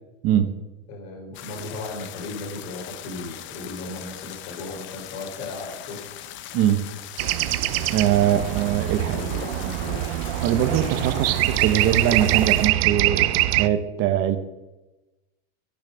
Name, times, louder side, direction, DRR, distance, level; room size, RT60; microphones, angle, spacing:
voice 1, 0.9-6.0 8.2-8.6 9.0-10.0, left 2 dB, 55° left, 0 dB, 4.1 m, -36 dB
sound 1, 1.3-12.7, left 12 dB, 40° left, 0.7 m, -40 dB
sound 2, 7.2-13.7, right 16 dB, 80° right, 0.5 m, -24 dB
voice 2, 7.9-9.2 10.4-14.4, right 10 dB, 45° right, 10 dB, 0.9 m, -22 dB
8.5 x 6.3 x 6.7 m, 1.0 s
supercardioid pair, 140°, 30 cm